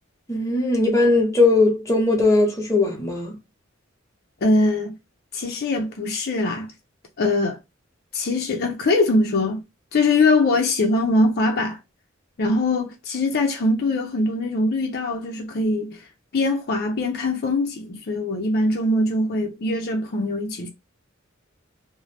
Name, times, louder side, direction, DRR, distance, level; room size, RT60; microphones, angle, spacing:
voice 1, 0.3-3.3, left 2 dB, 15° left, 0.8 m, -19 dB
voice 2, 4.4-4.9 5.3-6.7 7.2-7.6 8.1-9.6 9.9-11.8 12.4-16.0 16.3-20.7, left 2 dB, 55° left, 0.5 m, -22 dB
2.6 x 2.0 x 3.1 m
head